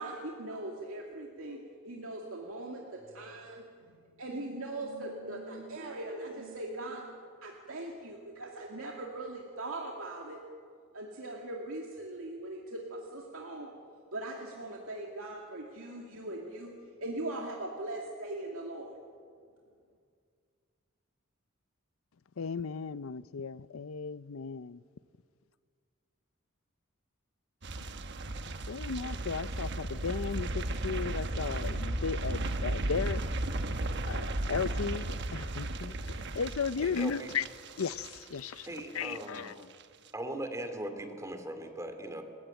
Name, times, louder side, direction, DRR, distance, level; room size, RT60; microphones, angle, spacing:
voice 1, 0.0-1.6 1.8-7.1 7.4-10.4 10.9-13.7 14.1-18.9, right 2 dB, 85° right, 2.4 m, -40 dB
voice 2, 22.4-24.8 28.7-33.2 34.0-37.5 37.8-39.7, left 5 dB, 80° left, 0.6 m, -35 dB
sound 1, 27.6-38.8 39.0-39.4 39.7-39.8, right 2 dB, 55° right, 1.1 m, -35 dB
voice 3, 36.8-37.3 38.7-39.4 40.1-42.2, right 1 dB, 15° right, 2.5 m, -39 dB
29.5 x 15.0 x 9.1 m
head